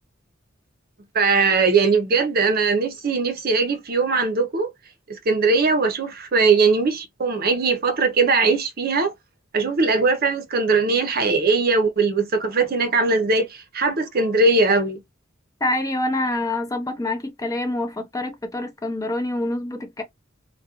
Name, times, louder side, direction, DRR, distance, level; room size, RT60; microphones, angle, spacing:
voice 1, 1.1-4.7 5.1-9.1 9.5-15.0, right 4 dB, 50° right, 0.6 m, -20 dB
voice 2, 15.6-20.0, left 1 dB, 15° left, 0.5 m, -26 dB
2.3 x 2.2 x 2.8 m
head